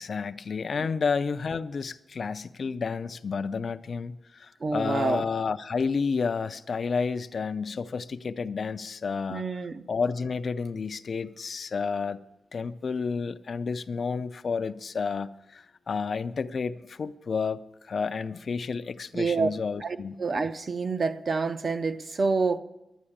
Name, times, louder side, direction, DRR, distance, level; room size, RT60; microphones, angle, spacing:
voice 1, 0.0-9.4 9.9-12.2 12.5-20.2, left 5 dB, 50° left, 0.4 m, -31 dB
voice 2, 4.6-5.3 9.3-9.8 19.1-19.5 19.8-22.6, right 4 dB, 40° right, 0.6 m, -27 dB
11.0 x 9.7 x 8.6 m
wide cardioid pair, 160°, 0 cm